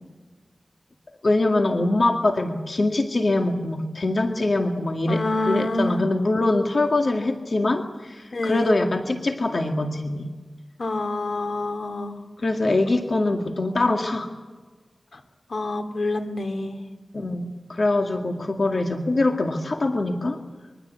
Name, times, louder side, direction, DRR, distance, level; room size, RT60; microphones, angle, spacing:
voice 1, 1.2-10.3 12.4-14.3 17.1-20.4, left 2 dB, 60° left, 4 dB, 2.1 m, -23 dB
voice 2, 5.1-6.1 8.3-8.8 10.8-12.2 15.1-15.2 15.5-16.8, left 2 dB, 80° left, 6 dB, 2.5 m, -27 dB
24.5 x 23.0 x 8.3 m, 1.3 s
wide cardioid pair, 65°, 0 cm